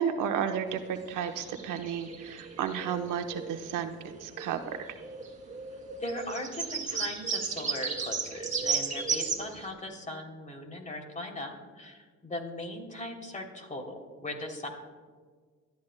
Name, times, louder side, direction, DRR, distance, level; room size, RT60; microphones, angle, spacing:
voice 1, 0.0-4.0 4.2-4.6, right 8 dB, 85° right, 6 dB, 1.0 m, -32 dB
sound 1, 0.7-3.7 4.0-4.6 4.9-9.7, right 5 dB, 25° right, 2.6 m, -35 dB
voice 2, 6.0-14.7, left 1 dB, 25° left, 2 dB, 3.0 m, -39 dB
24.0 x 13.0 x 2.2 m, 1.5 s
cardioid pair, 90°, 30 cm